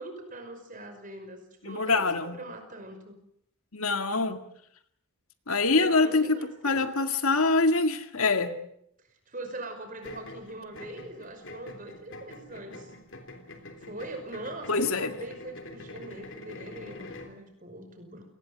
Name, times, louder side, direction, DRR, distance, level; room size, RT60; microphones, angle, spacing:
voice 1, 0.0-3.2 5.7-7.1 9.0-12.9 13.8-18.2, right 1 dB, 35° right, 7 dB, 5.5 m, -42 dB
voice 2, 1.6-2.4 3.7-4.4 5.5-6.4 6.6-8.5 14.7-15.1, left 3 dB, 75° left, 8 dB, 2.0 m, -24 dB
sound 1, 10.0-17.4, left 2 dB, 55° left, 3.4 m, -45 dB
28.0 x 20.0 x 8.0 m, 0.71 s
head